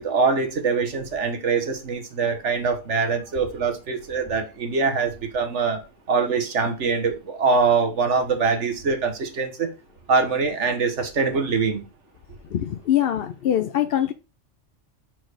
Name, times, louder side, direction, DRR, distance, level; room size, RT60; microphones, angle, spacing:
voice 1, 0.0-5.8 6.1-9.7 10.1-11.8, right 4 dB, 70° right, 1.6 m, -23 dB
voice 2, 12.5-14.1, left 11 dB, 60° left, 0.7 m, -23 dB
6.3 x 4.6 x 4.8 m
omnidirectional pair, 1.3 m